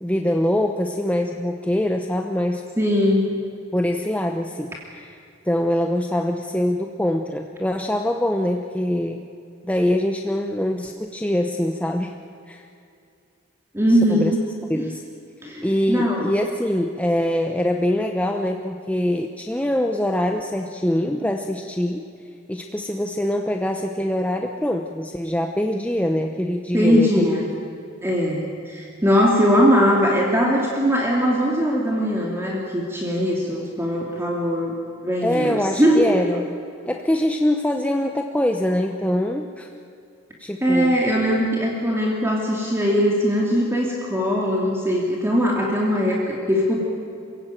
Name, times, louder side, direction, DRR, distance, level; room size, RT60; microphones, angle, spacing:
voice 1, 0.0-2.6 3.7-5.2 5.5-9.3 9.6-12.1 12.5-12.7 14.1-14.3 14.7-15.0 15.6-22.0 22.5-27.3 35.2-36.6 36.9-39.7 40.4-41.0, left 1 dB, 5° left, 3 dB, 0.9 m, -23 dB
voice 2, 2.8-3.2 13.7-14.4 14.7-14.9 15.4-16.4 26.7-27.5 28.0-34.7 35.0-36.1 40.6-46.8, equal, 15° right, -2 dB, 2.7 m, -20 dB
28.0 x 16.5 x 9.1 m, 2.5 s
head